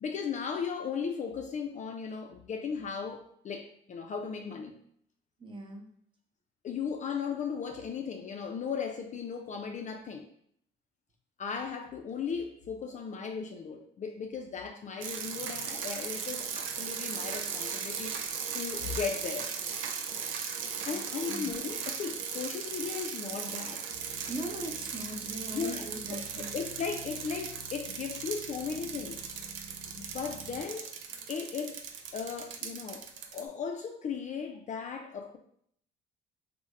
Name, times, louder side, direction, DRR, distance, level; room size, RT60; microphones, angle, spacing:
voice 1, 0.0-4.7 6.6-10.3 11.4-18.1 18.5-19.5 20.8-23.9 25.5-25.9 26.1-26.2 26.5-29.2 30.0-30.9 31.3-31.8 32.1-35.4, left 6 dB, 35° left, 4 dB, 0.4 m, -36 dB
voice 2, 5.4-5.9 20.9-21.0 21.3-21.5 24.3-26.5, right 1 dB, 25° right, 0 dB, 0.7 m, -40 dB
sound 1, 15.0-33.4, right 6 dB, 70° right, 0.5 m, -38 dB
sound 2, 23.9-30.6, left 1 dB, 90° right, 0.9 m, -52 dB
3.4 x 2.1 x 3.1 m, 0.66 s
cardioid pair, 95°, 21 cm